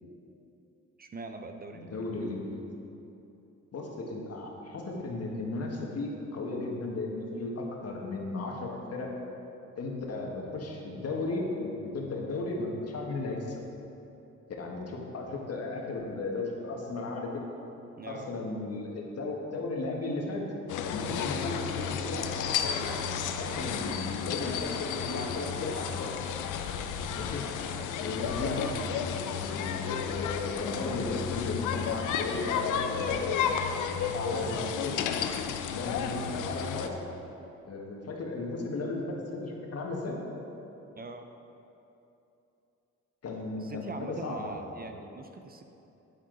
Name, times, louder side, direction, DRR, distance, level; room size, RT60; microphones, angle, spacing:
voice 1, 1.0-2.1 18.0-18.4 41.0-41.3 43.6-45.6, right 3 dB, 30° right, 6 dB, 0.6 m, -42 dB
voice 2, 1.7-2.6 3.7-9.1 9.8-13.6 14.6-17.4 18.0-20.5 20.9-23.0 23.3-26.1 27.2-27.5 27.9-28.7 29.0-33.3 34.1-35.1 35.7-37.0 37.6-40.2 43.2-44.5, left 2 dB, 55° left, -1 dB, 1.7 m, -35 dB
sound 1, 20.7-36.9, left 7 dB, 85° left, 0.6 m, -32 dB
8.8 x 8.8 x 3.9 m, 2.9 s
cardioid pair, 90°, 30 cm